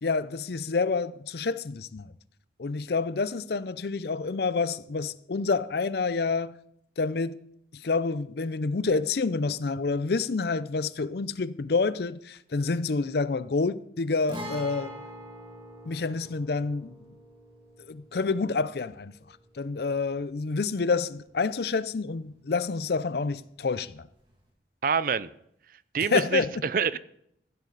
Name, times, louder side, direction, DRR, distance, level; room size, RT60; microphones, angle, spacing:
voice 1, 0.0-2.1 2.6-6.5 7.0-7.4 7.7-15.0 15.9-17.0 17.9-19.1 19.6-24.1 26.1-26.6, left 4 dB, 60° left, 0.5 m, -28 dB
Guitar, 14.3-21.9 22.2-22.3 24.3-24.4, equal, 25° right, 2.6 m, -44 dB
voice 2, 24.8-25.3 25.9-27.0, right 6 dB, 50° right, 0.4 m, -26 dB
15.5 x 11.5 x 4.0 m
head